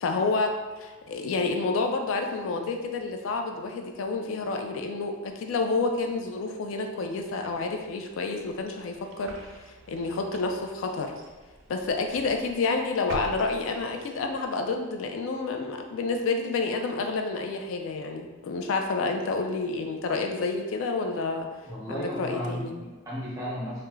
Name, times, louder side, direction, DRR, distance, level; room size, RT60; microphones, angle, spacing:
voice 1, 0.0-9.4 9.9-11.2 11.7-21.5 21.9-22.7, left 3 dB, 85° left, 4 dB, 0.3 m, -29 dB
sound 1, 7.0-14.5, right 2 dB, 80° right, 0.4 m, -47 dB
voice 2, 21.6-23.8, equal, 20° right, -7 dB, 0.6 m, -34 dB
3.0 x 2.1 x 2.3 m, 1.3 s
head